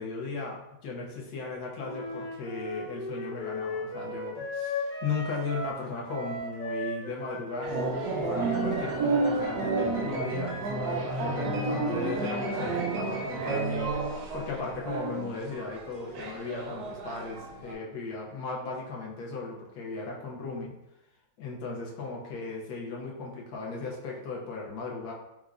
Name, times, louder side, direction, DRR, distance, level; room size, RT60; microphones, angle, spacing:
voice 1, 0.0-7.8 8.2-13.9 14.3-20.7 21.4-25.1, left 4 dB, 70° left, -2 dB, 1.1 m, -36 dB
Wind instrument woodwind instrument, 1.8-5.8 6.0-10.0, left 1 dB, 50° left, 0.6 m, -37 dB
sound 1, 7.6-17.7, right 3 dB, 70° right, 1.0 m, -31 dB
Piano, 8.4-14.9, right 1 dB, 90° right, 1.7 m, -42 dB
4.6 x 2.0 x 2.4 m, 0.88 s
omnidirectional pair, 1.9 m